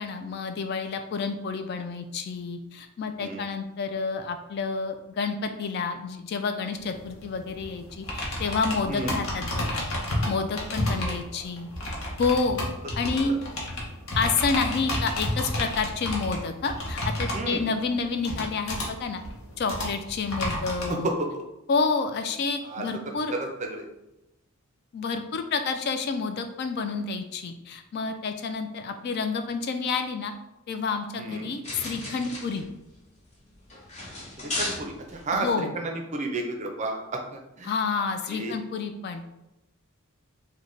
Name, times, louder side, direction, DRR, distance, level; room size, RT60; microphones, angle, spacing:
voice 1, 0.0-9.8 10.3-11.7 12.2-12.6 13.0-13.4 14.1-19.2 19.6-21.1 21.7-23.3 24.9-30.3 30.7-32.6 35.3-35.7 37.6-39.2, left 4 dB, 50° left, 7 dB, 0.3 m, -29 dB
sound 1, 6.8-20.9, left 1 dB, 65° left, 0.9 m, -32 dB
voice 2, 10.9-11.2 13.1-13.4 17.3-17.6 20.9-21.4 22.6-22.8 23.3-23.9 31.2-31.5 34.4-37.7 38.3-38.6, right 2 dB, 35° right, 3 dB, 0.5 m, -32 dB
sound 2, 31.6-35.5, left 2 dB, 30° left, 0.7 m, -36 dB
3.2 x 2.2 x 3.8 m, 0.94 s
head